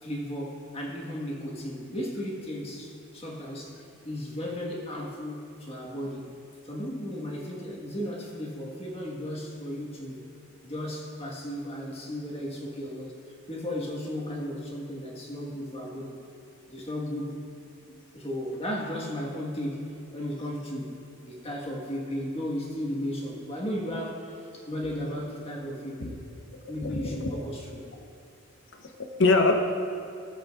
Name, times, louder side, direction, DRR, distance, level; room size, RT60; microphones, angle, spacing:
voice 1, 0.0-6.3 6.6-10.2 10.6-13.1 13.5-16.1 16.7-17.4 17.9-19.8 20.1-20.9 21.2-26.2 26.7-27.9, equal, 25° left, -2 dB, 1.5 m, -35 dB
voice 2, 26.8-27.4 28.7-29.5, left 3 dB, 55° left, 4 dB, 0.8 m, -24 dB
18.5 x 7.9 x 2.5 m, 2.6 s
head